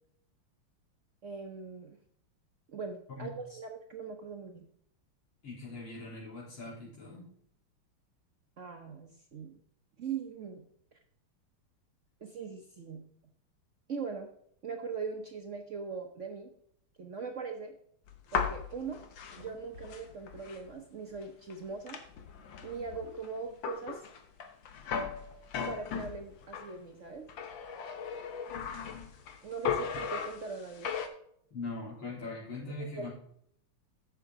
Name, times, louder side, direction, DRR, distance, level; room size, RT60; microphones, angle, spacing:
voice 1, 1.2-2.0 2.7-4.7 8.6-9.6 10.0-10.7 12.2-13.1 13.9-14.3 14.6-16.5 17.0-17.7 18.3-19.0 19.4-22.0 22.6-24.0 25.7-27.3 29.4-30.9 32.8-33.1, right 5 dB, 60° right, 3 dB, 0.8 m, -40 dB
voice 2, 3.1-3.6 5.4-7.3 31.5-33.1, left 3 dB, 80° left, -5 dB, 4.7 m, -41 dB
sound 1, 18.1-20.7 21.1-21.2 21.5-26.7 27.3-29.4 29.6-31.1, left 6 dB, 65° left, 1.7 m, -37 dB
10.5 x 7.1 x 3.6 m, 0.67 s
omnidirectional pair, 2.4 m